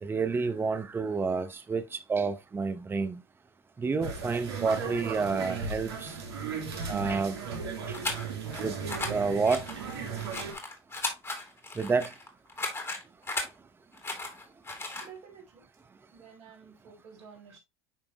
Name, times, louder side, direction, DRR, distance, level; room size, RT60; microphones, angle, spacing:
voice 1, 0.0-3.2 3.8-6.1 6.9-7.4 8.6-8.8 9.1-9.6 11.8-12.1, right 4 dB, 15° right, 0.8 m, -29 dB
sound 1, 4.0-10.5, right 5 dB, 75° right, 2.1 m, -36 dB
sound 2, 7.9-8.6 8.9-9.1 9.4-13.5 13.9-15.1, left 2 dB, 20° left, 2.5 m, -36 dB
voice 2, 15.0-15.7 16.1-17.6, right 6 dB, 50° right, 3.4 m, -51 dB
10.0 x 3.4 x 2.9 m
hypercardioid pair, 90°, 13 cm